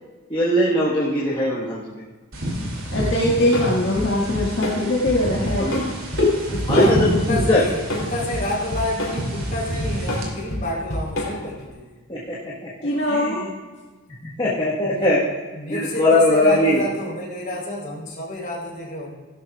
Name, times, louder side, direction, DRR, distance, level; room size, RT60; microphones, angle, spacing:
voice 1, 0.3-2.0 5.6-5.9 6.7-7.6 12.1-12.7 13.1-13.5 14.2-15.2 15.7-16.8, left 1 dB, 25° left, -8 dB, 1.5 m, -20 dB
sound 1, 2.3-10.3, equal, 75° right, 2.9 m, -29 dB
voice 2, 2.9-5.9 6.2-6.3 6.7-6.8 12.8-13.4, left 1 dB, 55° left, -6 dB, 1.9 m, -21 dB
Drum kit / Drum, 3.0-11.6, left 1 dB, 75° left, 3.7 m, -29 dB
voice 3, 6.5-11.9 14.8-15.1 15.5-19.1, left 1 dB, 40° left, -4 dB, 4.2 m, -29 dB
16.5 x 12.0 x 2.5 m, 1.3 s
head